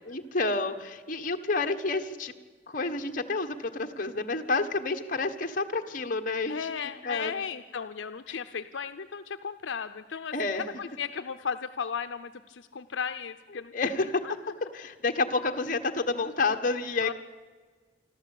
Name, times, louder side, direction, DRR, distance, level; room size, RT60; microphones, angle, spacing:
voice 1, 0.1-2.3 2.7-6.7 7.0-7.3 8.3-8.4 10.3-10.6 13.7-14.2 14.7-17.1, left 3 dB, 45° left, 5 dB, 1.4 m, -29 dB
voice 2, 6.5-13.7 14.2-14.5 17.0-17.1, left 6 dB, 75° left, 10 dB, 0.6 m, -35 dB
26.0 x 12.5 x 8.5 m, 1.4 s
head